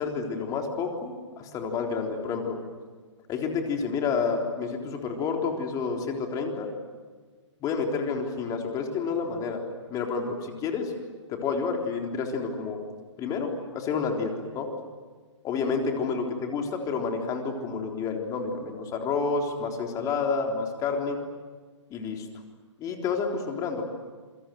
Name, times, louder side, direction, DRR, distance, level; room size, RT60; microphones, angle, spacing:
voice 1, 0.0-2.6 3.3-6.7 7.6-10.9 11.3-12.8 13.2-14.7 15.4-21.2 21.9-22.3 22.8-23.8, left 5 dB, 20° left, 2 dB, 3.8 m, -29 dB
27.5 x 24.5 x 7.9 m, 1.4 s
hypercardioid pair, 135°, 16 cm